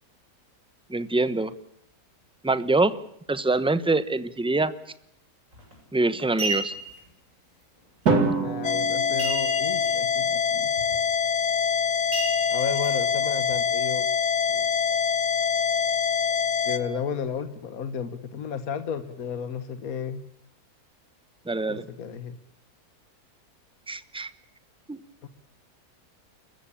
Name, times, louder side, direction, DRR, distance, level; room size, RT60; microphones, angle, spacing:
voice 1, 0.9-1.5 2.4-3.0 3.3-4.7 5.9-6.7 21.5-21.9 23.9-24.3 24.9-25.0, right 2 dB, 5° right, 14 dB, 0.8 m, -24 dB
sound 1, 5.5-5.7 6.2-7.0 9.2-9.9 10.2-10.3 10.8-11.0 12.1-12.9 13.5-13.6, right 2 dB, 55° right, 8.6 m, -31 dB
Drum, 8.1-10.2, right 3 dB, 80° right, 3.2 m, -26 dB
voice 2, 8.4-10.7 12.5-14.1 14.5-14.7 16.6-20.2 21.7-22.4 25.2-25.3, left 7 dB, 65° left, 10 dB, 1.7 m, -33 dB
sound 2, 8.6-16.8, left 7 dB, 50° left, 1.6 m, -25 dB
29.5 x 14.5 x 8.6 m, 0.74 s
omnidirectional pair, 1.6 m